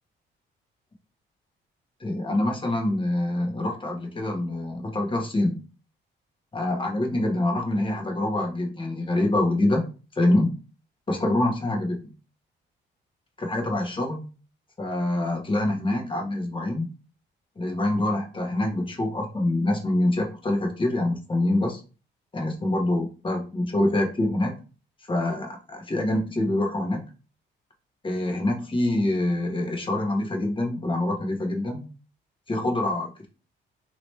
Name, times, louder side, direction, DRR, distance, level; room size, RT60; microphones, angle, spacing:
voice 1, 2.0-5.6 6.5-9.8 10.1-10.5 11.1-12.1 13.4-14.2 14.8-16.9 17.6-21.8 22.3-24.6 25.1-27.0 28.0-31.8 32.5-33.3, left 1 dB, 25° left, 1 dB, 1.2 m, -25 dB
3.0 x 2.9 x 3.2 m, 0.35 s
cardioid pair, 90°, 20 cm